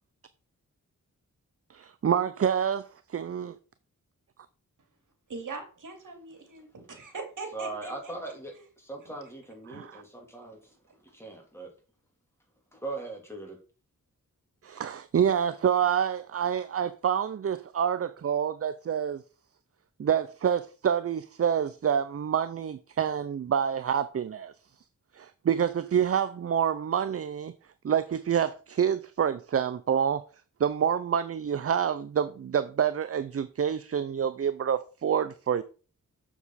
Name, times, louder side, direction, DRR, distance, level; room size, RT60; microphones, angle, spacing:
voice 1, 1.7-3.6 9.7-10.0 14.6-19.2 20.0-24.5 25.1-27.5 27.8-30.2 30.6-35.6, right 8 dB, 45° right, 0.5 m, -27 dB
voice 2, 5.3-8.1 8.5-8.6, right 4 dB, 65° right, 2.6 m, -41 dB
voice 3, 7.5-10.6 11.1-11.7 12.7-13.6, right 2 dB, 10° left, 3.3 m, -39 dB
7.1 x 7.0 x 4.1 m
wide cardioid pair, 75°, 33 cm